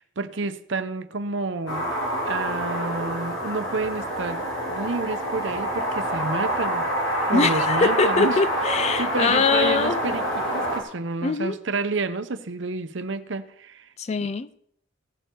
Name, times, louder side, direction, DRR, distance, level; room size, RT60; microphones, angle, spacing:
voice 1, 0.0-1.9 2.2-8.4 9.0-13.9, right 3 dB, 70° right, 0.8 m, -30 dB
sound 1, 1.7-10.8, equal, 80° left, 2.6 m, -26 dB
voice 2, 7.3-10.0 11.2-11.6 14.0-14.5, left 4 dB, 30° left, 0.4 m, -23 dB
17.0 x 6.9 x 4.5 m
head